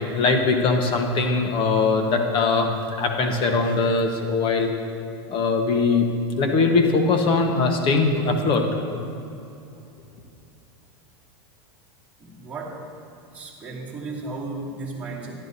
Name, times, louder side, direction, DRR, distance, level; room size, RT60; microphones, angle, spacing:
voice 1, 0.0-4.7 5.3-6.1 6.4-8.7, left 4 dB, 40° left, 4 dB, 1.2 m, -21 dB
voice 2, 12.2-12.9 13.3-15.3, right 3 dB, 10° right, -7 dB, 2.4 m, -34 dB
14.5 x 11.0 x 2.8 m, 2.6 s
supercardioid pair, 125°, 14 cm